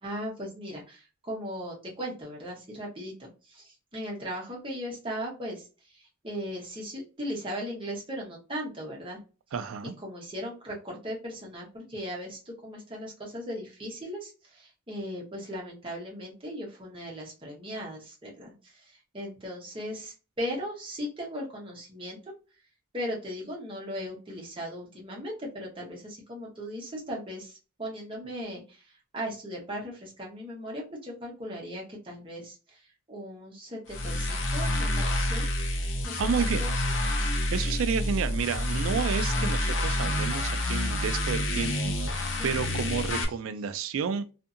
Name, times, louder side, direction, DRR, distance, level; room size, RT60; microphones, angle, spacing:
voice 1, 0.0-9.2 10.0-22.3 22.9-35.5 36.0-36.7 42.4-42.7, equal, 25° right, 0.9 m, -38 dB
voice 2, 9.5-9.9 36.2-36.6 37.5-44.3, right 6 dB, 70° right, 0.3 m, -31 dB
sound 1, 33.9-43.2, left 1 dB, 60° left, 0.6 m, -28 dB
2.7 x 2.5 x 2.4 m
head